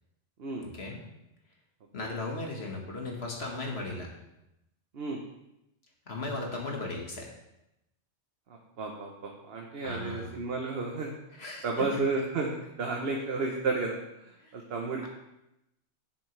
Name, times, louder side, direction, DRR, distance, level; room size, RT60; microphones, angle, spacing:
voice 1, 0.6-1.0 1.9-4.1 6.1-7.3 9.8-10.4 11.3-12.0 14.4-14.6, left 2 dB, 60° left, 0 dB, 1.9 m, -37 dB
voice 2, 8.8-11.1 11.6-14.0 14.2-15.1, right 3 dB, 60° right, 1 dB, 1.2 m, -32 dB
11.0 x 7.3 x 3.3 m, 0.87 s
omnidirectional pair, 1.2 m